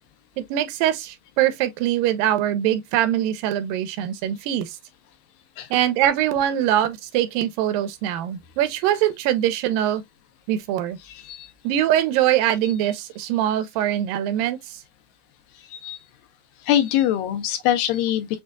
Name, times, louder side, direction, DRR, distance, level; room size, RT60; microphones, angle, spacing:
voice 1, 0.4-4.7 5.7-10.0 10.5-11.0 11.6-14.8, right 12 dB, 80° right, 2.2 m, -23 dB
voice 2, 11.1-11.5 15.6-16.0 16.6-18.4, left 11 dB, 80° left, 2.4 m, -23 dB
6.2 x 2.4 x 2.3 m
omnidirectional pair, 3.9 m